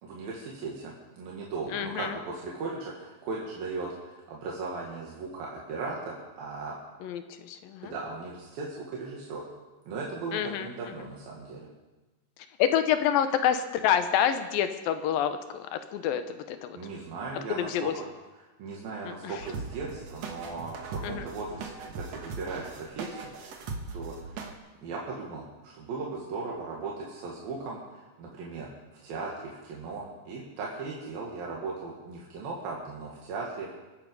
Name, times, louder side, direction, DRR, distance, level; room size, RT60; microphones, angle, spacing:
voice 1, 0.0-6.7 7.8-9.4 9.9-11.7 16.7-17.9 18.6-23.3 23.9-24.4 24.8-28.7 29.0-33.7, right 3 dB, 85° right, -3 dB, 3.8 m, -37 dB
voice 2, 1.7-2.1 7.0-7.9 10.3-10.7 12.6-16.2 16.5-16.8 17.5-17.9 19.2-19.3 21.0-21.3, left 9 dB, 85° left, 9 dB, 2.7 m, -27 dB
sound 1, 19.4-24.5, right 4 dB, 55° right, 2.2 m, -39 dB
23.5 x 9.4 x 5.4 m, 1.1 s
omnidirectional pair, 4.0 m